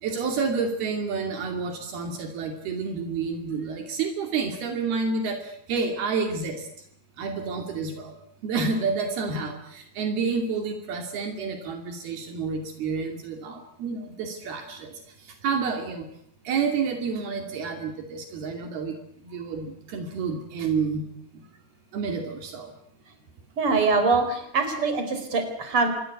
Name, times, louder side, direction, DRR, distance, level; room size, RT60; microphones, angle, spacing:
voice 1, 0.0-6.7 7.2-8.2 8.4-16.1 16.4-19.0 19.2-21.1 21.3-21.4 21.9-22.7, right 5 dB, 75° right, 4 dB, 4.5 m, -29 dB
voice 2, 23.6-25.9, right 4 dB, 35° right, 7 dB, 5.4 m, -23 dB
27.0 x 21.0 x 8.4 m, 0.70 s
omnidirectional pair, 4.5 m